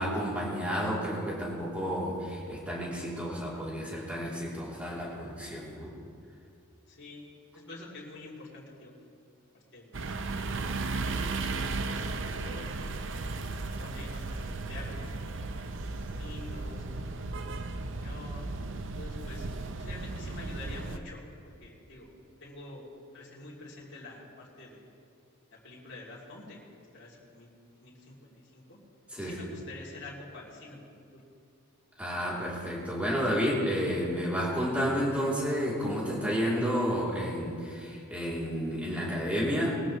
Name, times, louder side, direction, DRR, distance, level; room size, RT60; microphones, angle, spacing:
voice 1, 0.0-5.9 29.1-29.4 32.0-39.7, equal, 5° right, -6 dB, 2.9 m, -31 dB
voice 2, 6.9-8.9 9.7-10.7 11.3-12.9 13.5-15.1 15.8-16.8 18.0-18.5 18.9-19.5 19.8-21.3 21.6-22.1 22.4-24.9 25.5-26.6 26.9-27.5 27.8-28.8 29.2-31.2, left 2 dB, 50° left, -5 dB, 2.7 m, -47 dB
sound 1, 9.9-21.0, right 3 dB, 55° right, 0.7 m, -35 dB
21.0 x 14.5 x 3.1 m, 2.4 s
head